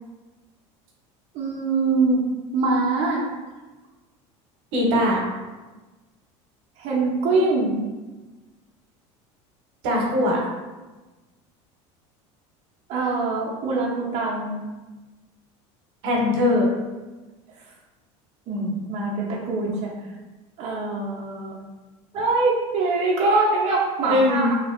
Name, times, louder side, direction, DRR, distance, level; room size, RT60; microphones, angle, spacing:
voice 1, 1.3-2.2 2.5-3.3 6.8-7.8 12.9-14.6 18.5-19.9 20.6-21.6 22.1-24.6, right 3 dB, 45° right, -5 dB, 0.5 m, -23 dB
voice 2, 4.7-5.2 9.8-10.4 16.0-16.7 24.0-24.5, left 1 dB, 75° right, -2 dB, 0.8 m, -20 dB
2.7 x 2.5 x 2.4 m, 1.2 s
supercardioid pair, 120°, 15 cm